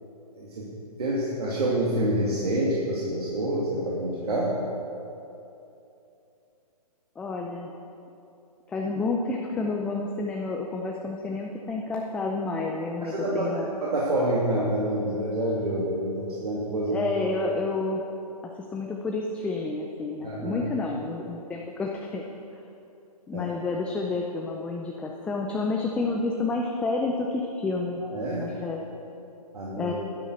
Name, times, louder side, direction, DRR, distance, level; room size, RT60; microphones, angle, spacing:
voice 1, 0.3-0.7 1.0-4.5 13.0-17.0 20.2-20.7 23.3-23.5 28.0-28.5 29.5-29.9, right 1 dB, 70° right, -6 dB, 2.8 m, -27 dB
voice 2, 7.2-7.7 8.7-13.7 16.9-18.0 18.4-22.2 23.3-28.0 28.4-28.8 29.8-29.9, left 3 dB, 5° left, 0 dB, 0.5 m, -30 dB
11.5 x 10.5 x 6.5 m, 2.8 s
hypercardioid pair, 140°, 20 cm